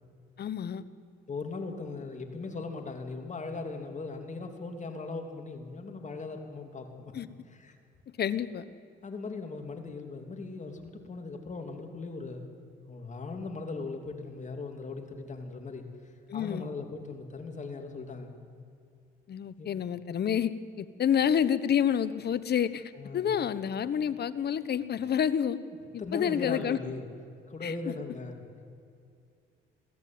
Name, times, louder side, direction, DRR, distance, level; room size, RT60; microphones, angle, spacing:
voice 1, 0.4-0.8 7.1-7.3 8.2-8.6 16.3-16.7 19.3-20.5 20.8-25.6 25.9-26.8 27.6-27.7, left 8 dB, 55° left, 14 dB, 1.1 m, -28 dB
voice 2, 1.3-7.1 7.5-7.8 9.0-12.5 12.9-15.8 16.3-18.3 19.6-19.7 23.0-23.3 26.0-27.1 27.5-28.5, left 3 dB, 35° left, 5 dB, 3.0 m, -39 dB
22.0 x 15.5 x 9.5 m, 2.4 s
cardioid pair, 90°, 20 cm